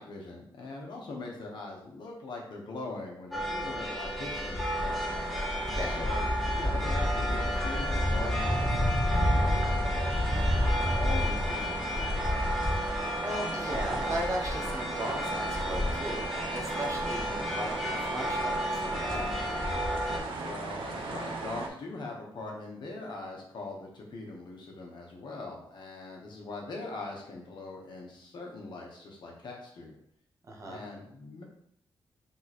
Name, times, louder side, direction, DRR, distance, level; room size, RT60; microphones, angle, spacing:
voice 1, 0.0-5.0 5.8-12.4 20.4-29.9 30.7-31.4, left 3 dB, 65° left, -1 dB, 1.1 m, -41 dB
sound 1, 3.3-20.2, left 1 dB, ahead, 0.8 m, -30 dB
sound 2, 4.7-21.7, right 3 dB, 90° right, 0.6 m, -38 dB
voice 2, 5.7-6.0 12.9-19.3 30.5-30.8, right 1 dB, 40° right, 0 dB, 0.8 m, -37 dB
3.7 x 3.1 x 4.1 m, 0.70 s
wide cardioid pair, 160°, 8 cm